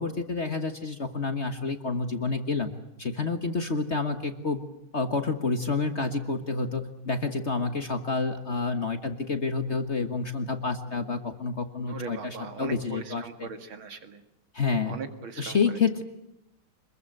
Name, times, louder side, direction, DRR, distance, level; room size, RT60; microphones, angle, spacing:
voice 1, 0.0-2.7 3.0-4.6 4.9-13.5 14.5-15.0 15.4-16.0, left 4 dB, 35° left, 8 dB, 1.4 m, -29 dB
voice 2, 11.9-14.2 14.9-15.6, right 5 dB, 70° right, 8 dB, 2.8 m, -39 dB
26.0 x 22.0 x 7.9 m, 0.85 s
omnidirectional pair, 2.3 m